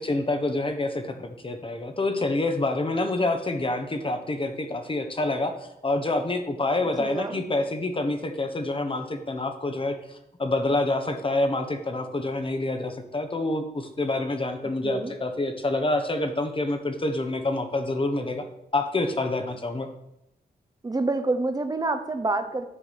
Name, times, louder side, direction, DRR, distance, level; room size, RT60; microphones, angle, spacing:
voice 1, 0.0-18.4 18.7-19.9, left 2 dB, 30° left, 6 dB, 1.2 m, -27 dB
voice 2, 7.0-7.3 14.8-15.1 20.8-22.7, right 2 dB, 25° right, 8 dB, 0.9 m, -27 dB
10.0 x 4.7 x 7.4 m, 0.82 s
wide cardioid pair, 120°, 17 cm